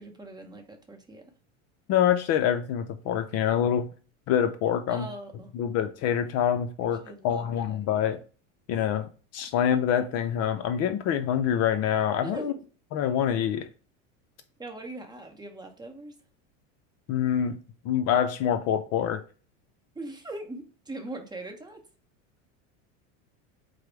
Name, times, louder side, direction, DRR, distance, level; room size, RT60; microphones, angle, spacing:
voice 1, 0.0-1.3 4.9-5.5 6.8-7.5 12.2-12.6 14.6-16.1 19.9-21.8, right 2 dB, 10° right, 0.7 m, -41 dB
voice 2, 1.9-3.9 4.3-5.1 5.5-8.2 8.7-12.5 12.9-13.7 17.1-17.6 17.8-19.2, left 9 dB, 45° left, 0.4 m, -26 dB
4.7 x 2.0 x 4.4 m
supercardioid pair, 110°, 37 cm